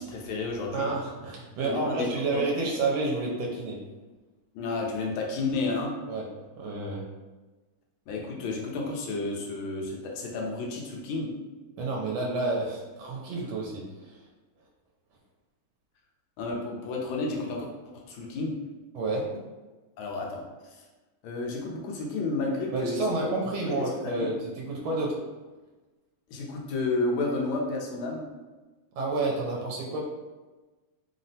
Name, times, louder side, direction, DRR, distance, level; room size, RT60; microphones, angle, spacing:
voice 1, 0.0-0.9 1.6-2.4 4.5-6.0 8.1-11.3 16.4-17.7 17.9-18.5 20.0-20.8 21.2-23.1 23.7-24.3 26.3-28.3, left 3 dB, 85° left, -1 dB, 1.4 m, -31 dB
voice 2, 0.7-3.8 6.1-6.2 6.6-7.0 11.8-14.2 18.9-19.3 22.7-25.2 29.0-30.0, right 2 dB, 80° right, -2 dB, 1.3 m, -30 dB
3.5 x 2.0 x 2.7 m, 1.2 s
omnidirectional pair, 2.2 m